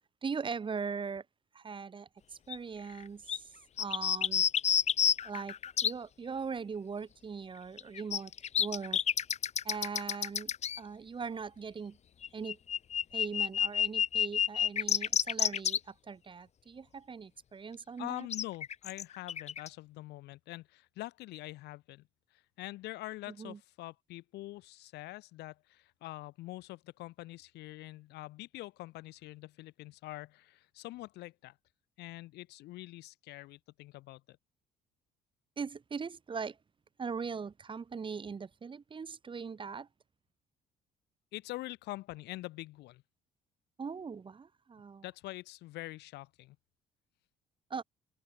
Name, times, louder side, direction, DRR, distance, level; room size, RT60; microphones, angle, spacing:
voice 1, 0.2-1.3 1.5-2.1 2.5-3.5 3.8-4.5 5.2-5.6 5.8-8.3 8.6-9.0 9.6-12.0 12.3-12.6 13.1-18.3 23.3-23.6 35.6-36.6 37.0-39.9 43.8-45.0 47.7-47.8, right 5 dB, 30° right, 2.1 m, -40 dB
sound 1, 2.5-2.6 3.0-3.1 3.3-3.4 3.8-5.9 7.8-10.8 12.2-15.8 18.3-19.7, left 9 dB, 40° left, 0.9 m, -29 dB
voice 2, 18.0-22.1 22.3-31.6 32.0-34.4 41.3-43.0 45.0-46.6, left 18 dB, 85° left, 3.7 m, -45 dB
cardioid pair, 110°, 17 cm